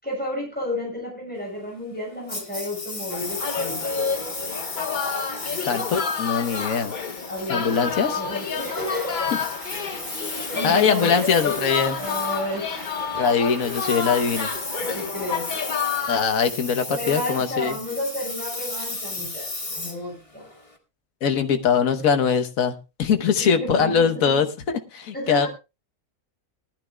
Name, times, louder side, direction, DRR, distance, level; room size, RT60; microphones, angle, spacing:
voice 1, 0.0-3.9 7.3-9.3 10.2-11.6 12.0-12.8 14.9-15.5 16.9-20.6 23.4-24.4 25.1-25.5, left 1 dB, 5° left, -2 dB, 7.1 m, -32 dB
Engine, 2.3-20.7, left 2 dB, 25° left, 1.6 m, -35 dB
sound 1, 3.1-16.2, left 6 dB, 40° left, 0.8 m, -29 dB
voice 2, 5.7-6.9 7.5-8.2 10.6-12.0 13.1-14.5 16.1-17.8 21.2-25.5, left 6 dB, 70° left, 7 dB, 1.5 m, -22 dB
sound 2, 7.7-14.6, right 3 dB, 80° right, 2.6 m, -44 dB
19.5 x 12.0 x 2.3 m, 0.27 s
omnidirectional pair, 1.5 m